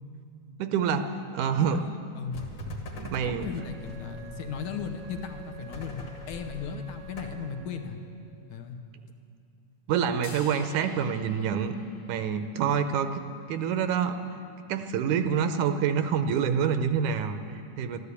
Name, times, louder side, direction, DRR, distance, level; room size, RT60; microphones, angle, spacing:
voice 1, 0.6-1.0 1.3-1.8 3.0-3.5 9.9-11.7 12.1-13.1 13.5-14.2 14.7-18.0, right 7 dB, 80° right, 9 dB, 2.0 m, -27 dB
voice 2, 1.6-2.5 3.2-8.0 8.5-8.8, left 6 dB, 80° left, 4 dB, 2.3 m, -36 dB
sound 1, 2.3-7.4, left 2 dB, 45° left, 1.7 m, -42 dB
Wind instrument woodwind instrument, 3.5-8.2, right 7 dB, 55° right, 1.2 m, -49 dB
sound 2, 10.2-12.8, left 5 dB, 60° left, 1.7 m, -48 dB
13.5 x 12.5 x 8.2 m, 2.6 s
omnidirectional pair, 3.6 m